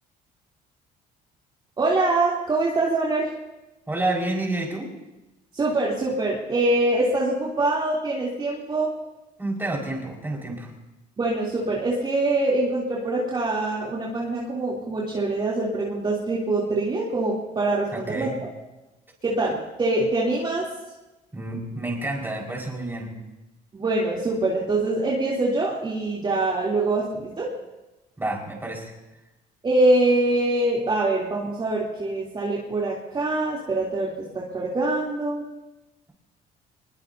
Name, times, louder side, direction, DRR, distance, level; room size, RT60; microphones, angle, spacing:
voice 1, 1.8-3.3 5.5-8.9 11.2-18.3 19.2-20.7 23.7-27.5 29.6-35.4, right 2 dB, 30° right, -5 dB, 3.3 m, -24 dB
voice 2, 3.9-4.9 9.4-10.7 17.9-18.4 21.3-23.1 28.2-28.9, right 2 dB, 10° right, -2 dB, 5.1 m, -29 dB
23.0 x 21.5 x 2.8 m, 1.0 s
cardioid pair, 110°, 17 cm